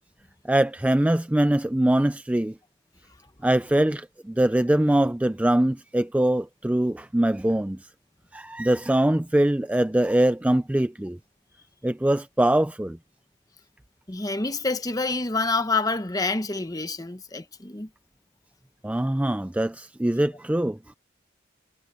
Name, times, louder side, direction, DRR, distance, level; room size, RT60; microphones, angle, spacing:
voice 1, 0.5-2.5 3.4-7.8 8.3-11.2 11.8-13.0 18.8-20.8, right 1 dB, 5° right, 0.3 m, -23 dB
voice 2, 14.1-17.9, left 3 dB, 20° left, 1.0 m, -27 dB
head